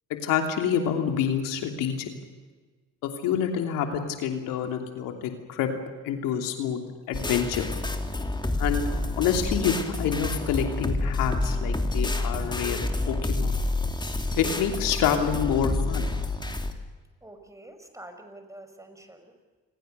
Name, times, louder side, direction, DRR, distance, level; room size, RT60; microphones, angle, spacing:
voice 1, 0.1-2.0 3.0-5.7 6.0-6.8 7.1-7.7 8.6-13.5 14.4-16.1, left 8 dB, 85° left, 5 dB, 3.0 m, -27 dB
sound 1, 7.1-16.7, left 2 dB, 15° left, 2.8 m, -28 dB
voice 2, 17.2-19.3, right 1 dB, 10° right, 6 dB, 5.4 m, -46 dB
29.0 x 21.5 x 6.8 m, 1.4 s
supercardioid pair, 80°, 32 cm